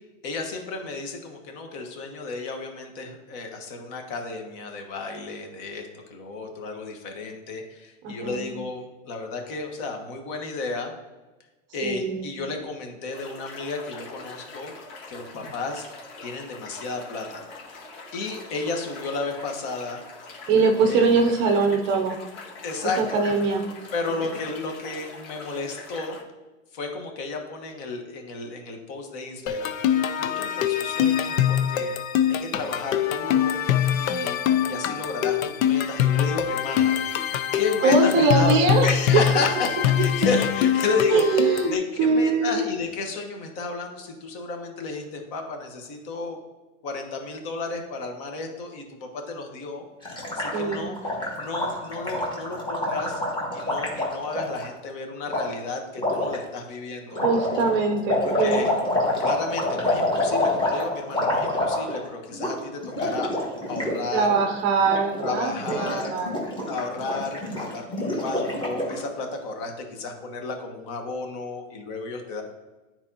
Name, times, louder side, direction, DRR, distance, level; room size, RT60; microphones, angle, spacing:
voice 1, 0.2-10.9 11.7-14.7 15.1-15.9 16.2-20.0 20.5-21.0 22.6-23.2 23.9-26.2 26.7-31.9 32.4-33.6 34.0-34.4 34.7-37.2 37.5-46.4 46.8-49.9 50.3-53.2 53.5-57.2 58.2-58.7 59.2-64.4 65.2-66.1 66.7-72.4, left 3 dB, 45° left, 3 dB, 1.3 m, -32 dB
voice 2, 8.0-8.4 11.8-12.3 20.5-22.2 23.0-23.6 37.8-38.9 41.1-42.6 50.5-50.9 57.2-58.7 64.1-66.3, right 4 dB, 30° right, 4 dB, 0.6 m, -22 dB
sound 1, 13.1-26.2, left 3 dB, 60° left, 1.9 m, -43 dB
sound 2, 29.5-41.8, left 10 dB, 85° left, 0.7 m, -23 dB
Gurgling, 50.0-54.7 55.3-55.4 56.0-56.4 57.1-62.1 62.3-62.5 62.8-64.4 64.8-65.3 65.6-69.0, left 1 dB, 10° left, 1.5 m, -27 dB
9.3 x 4.4 x 2.8 m, 1.1 s
hypercardioid pair, 140°, 40 cm